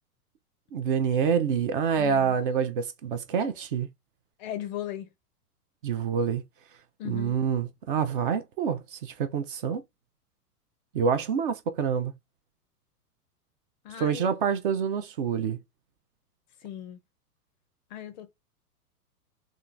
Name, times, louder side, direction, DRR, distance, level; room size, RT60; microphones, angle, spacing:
voice 1, 0.7-3.9 5.8-6.4 7.0-9.8 10.9-12.1 14.0-15.6, right 7 dB, 40° right, 0.4 m, -27 dB
voice 2, 2.0-2.4 4.4-5.1 7.0-7.4 13.8-14.3 16.6-17.0 17.9-18.3, left 11 dB, 30° left, 0.4 m, -37 dB
3.7 x 2.3 x 2.4 m
hypercardioid pair, 105°, 47 cm